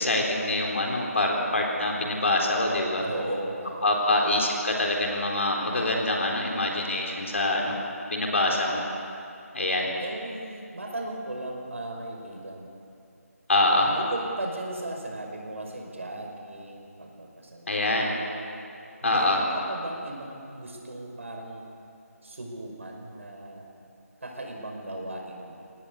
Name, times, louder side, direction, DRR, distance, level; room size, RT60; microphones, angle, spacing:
voice 1, 0.0-3.1 3.8-7.8 8.1-8.8 9.5-9.9 13.5-13.9 17.7-18.1 19.0-19.4, left 2 dB, 55° left, 0 dB, 4.0 m, -25 dB
voice 2, 3.0-4.3 10.0-12.7 13.8-18.5 19.0-21.7 22.2-23.7 24.2-25.7, right 1 dB, 55° right, 1 dB, 5.6 m, -37 dB
25.0 x 18.5 x 8.5 m, 2.6 s
figure-of-eight pair, 175°, 8 cm